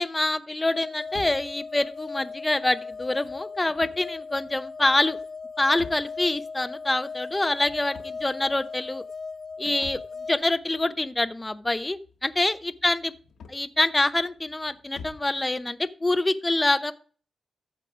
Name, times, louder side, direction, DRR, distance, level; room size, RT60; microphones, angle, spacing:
voice 1, 0.0-5.2 5.6-9.0 9.6-10.0 10.3-13.1 13.5-16.9, left 2 dB, 15° left, 12 dB, 0.7 m, -26 dB
sound 1, 0.7-10.4, left 4 dB, 55° left, 1.1 m, -38 dB
sound 2, 1.1-15.4, left 5 dB, 85° left, 1.3 m, -50 dB
14.0 x 4.8 x 4.8 m, 0.41 s
cardioid pair, 100°, 0 cm